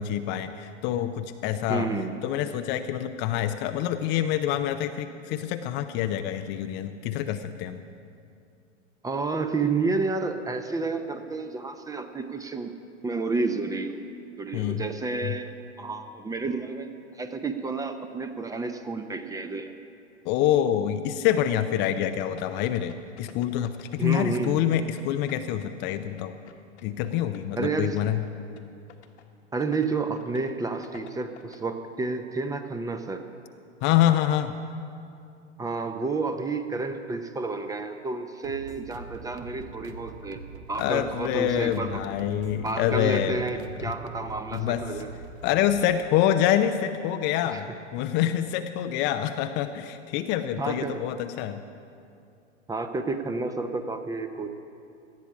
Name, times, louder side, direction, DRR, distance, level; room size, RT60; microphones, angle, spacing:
voice 1, 0.0-1.9 2.2-7.8 14.5-14.8 15.2-15.3 20.2-26.4 26.8-28.2 33.8-34.6 40.7-43.4 44.5-44.8 45.4-47.7 47.9-51.6, left 11 dB, 30° left, 8 dB, 0.6 m, -26 dB
voice 2, 1.7-2.2 9.0-12.7 13.0-13.9 14.4-15.5 15.8-16.9 17.1-19.7 24.0-24.6 27.5-28.0 29.5-33.3 35.6-40.4 40.7-42.0 42.6-45.1 47.5-47.6 50.6-51.0 52.7-54.5, right 3 dB, 10° right, 8 dB, 0.7 m, -30 dB
sound 1, 22.4-25.0 25.3-27.7 28.0-28.3 28.6-28.7 28.9-29.2 29.6-29.9 30.2-30.5 30.8-31.6, left 9 dB, 65° left, 1.4 m, -49 dB
sound 2, 38.4-45.9, right 4 dB, 65° right, 1.3 m, -44 dB
18.0 x 13.5 x 4.9 m, 2.5 s
figure-of-eight pair, 100°, 36 cm